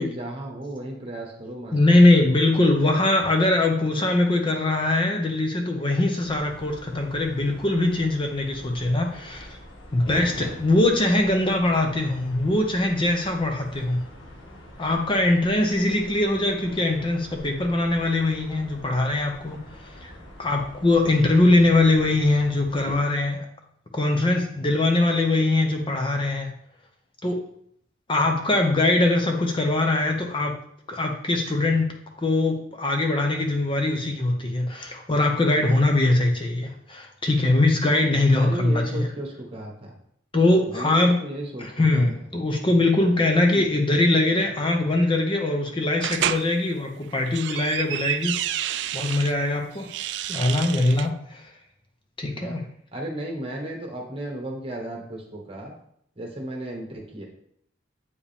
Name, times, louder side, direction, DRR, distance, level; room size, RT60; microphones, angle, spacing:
voice 1, 0.0-1.8 38.3-39.9 40.7-42.1 43.5-43.6 52.3-52.6 52.9-55.7 56.1-57.3, right 1 dB, 30° right, 0 dB, 1.4 m, -34 dB
voice 2, 1.7-9.6 9.9-14.0 14.8-20.1 20.4-23.4 23.9-26.5 27.2-27.4 28.1-30.6 30.9-31.9 32.2-39.1 40.3-41.2 41.6-51.5 52.2-52.6, left 2 dB, 25° left, 3 dB, 0.7 m, -22 dB
sound 1, 6.2-23.0, left 1 dB, 80° left, 1.5 m, -44 dB
sound 2, 46.0-46.4 47.1-49.3 49.8-51.1, right 11 dB, 60° right, 0.3 m, -29 dB
8.2 x 4.9 x 3.5 m, 0.69 s
head